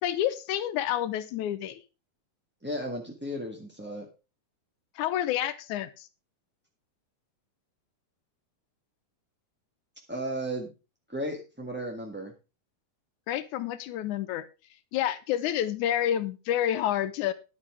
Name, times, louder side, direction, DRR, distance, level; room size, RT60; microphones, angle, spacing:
voice 1, 0.0-1.8 5.0-6.1 13.3-14.4 14.9-17.3, left 11 dB, 80° left, 14 dB, 2.3 m, -29 dB
voice 2, 2.6-4.1 10.1-10.7 11.1-12.3, right 1 dB, 10° right, 0 dB, 0.6 m, -34 dB
11.0 x 8.4 x 4.7 m, 0.30 s
omnidirectional pair, 3.5 m